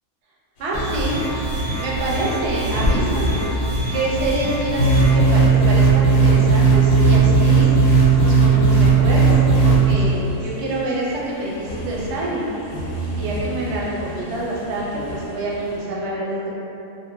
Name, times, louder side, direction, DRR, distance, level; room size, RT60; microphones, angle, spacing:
sound 1, 0.6-15.8, left 1 dB, 65° left, 0.9 m, -31 dB
voice 1, 0.6-1.2 1.8-3.4 3.9-7.7 8.2-12.5 13.2-16.6, right 1 dB, 65° right, -5 dB, 0.8 m, -26 dB
sound 2, 0.7-5.1, right 1 dB, 35° right, 0.4 m, -26 dB
sound 3, 4.8-9.9, right 4 dB, 85° left, 1.0 m, -15 dB
2.6 x 2.1 x 2.9 m, 3.0 s
omnidirectional pair, 1.4 m